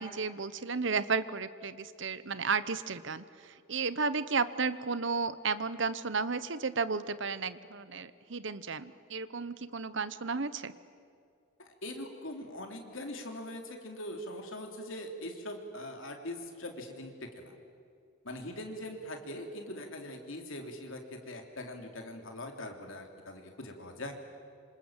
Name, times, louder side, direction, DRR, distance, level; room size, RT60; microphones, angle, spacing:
voice 1, 0.0-10.7, right 4 dB, 60° right, 15 dB, 0.9 m, -33 dB
voice 2, 11.6-17.5 18.2-24.1, left 1 dB, 70° left, 3 dB, 3.3 m, -42 dB
26.5 x 26.5 x 7.5 m, 2.3 s
head